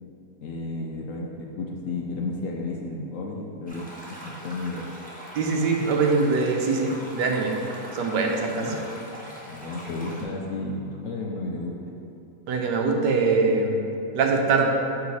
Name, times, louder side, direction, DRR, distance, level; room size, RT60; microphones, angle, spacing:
voice 1, 0.4-4.9 8.6-8.8 9.5-11.9, left 2 dB, 65° left, -1 dB, 0.8 m, -33 dB
sound 1, 3.7-10.2, right 1 dB, 5° left, 0.9 m, -41 dB
voice 2, 5.4-7.5 7.9-8.7 12.5-13.8 14.1-14.7, right 4 dB, 85° right, 2 dB, 1.4 m, -23 dB
6.4 x 5.1 x 4.1 m, 2.7 s
omnidirectional pair, 1.8 m